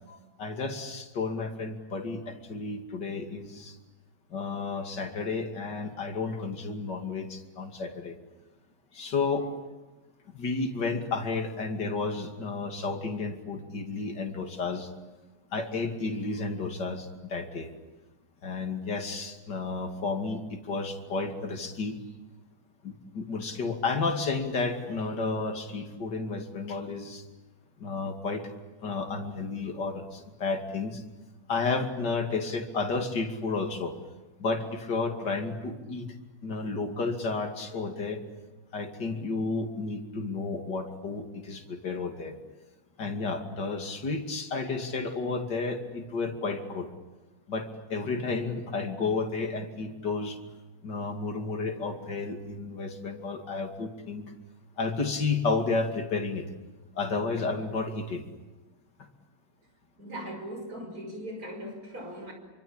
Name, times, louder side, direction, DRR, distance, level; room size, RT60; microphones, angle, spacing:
voice 1, 0.1-3.8 4.3-8.2 8.9-9.5 10.3-14.9 15.5-17.7 18.4-22.0 22.8-27.2 27.8-28.5 28.8-31.0 31.5-34.0 34.4-36.1 36.4-38.2 38.7-42.4 43.0-46.9 47.5-50.4 50.8-54.2 54.8-56.5 56.9-58.2, left 4 dB, 60° left, 4 dB, 3.2 m, -32 dB
voice 2, 60.0-62.3, equal, 45° right, 4 dB, 6.6 m, -39 dB
27.0 x 25.0 x 8.8 m, 1.2 s
omnidirectional pair, 2.1 m